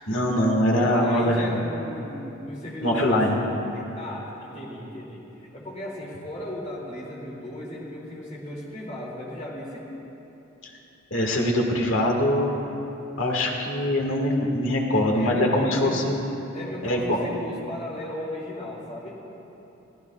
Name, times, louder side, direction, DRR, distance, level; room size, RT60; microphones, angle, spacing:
voice 1, 0.0-1.6 2.8-3.4 11.1-12.5 13.2-16.2 16.8-17.2, left 1 dB, 70° left, 0 dB, 1.8 m, -23 dB
voice 2, 0.7-3.4 3.7-9.9 14.9-16.0 16.5-19.2, left 1 dB, 35° left, -5 dB, 2.6 m, -36 dB
23.5 x 15.0 x 2.4 m, 3.0 s
head